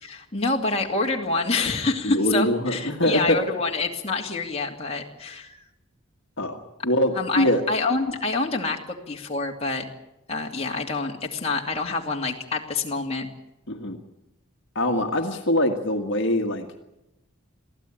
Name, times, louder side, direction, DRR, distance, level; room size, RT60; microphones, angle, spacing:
voice 1, 0.0-5.6 7.1-8.8 9.1-9.8 10.3-13.3, left 3 dB, 30° left, 0 dB, 2.6 m, -27 dB
voice 2, 2.0-3.4 6.4-6.6 6.8-7.6 13.7-14.0 14.7-16.8, left 1 dB, 60° left, 3 dB, 1.7 m, -23 dB
22.5 x 15.5 x 8.7 m, 0.92 s
head